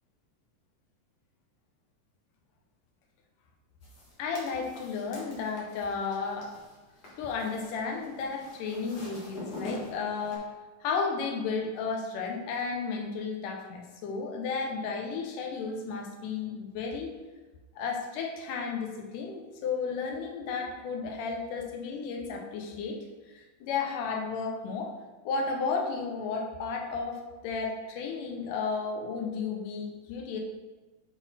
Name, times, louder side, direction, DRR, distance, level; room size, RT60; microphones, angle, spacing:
sound 1, 3.8-10.4, left 2 dB, 60° left, 1.0 m, -45 dB
voice 1, 4.2-6.5 7.2-10.5 10.8-17.1 17.8-23.0 23.3-24.9 25.3-30.4, left 5 dB, 75° left, 1 dB, 2.3 m, -33 dB
8.2 x 3.9 x 4.2 m, 1.3 s
omnidirectional pair, 4.0 m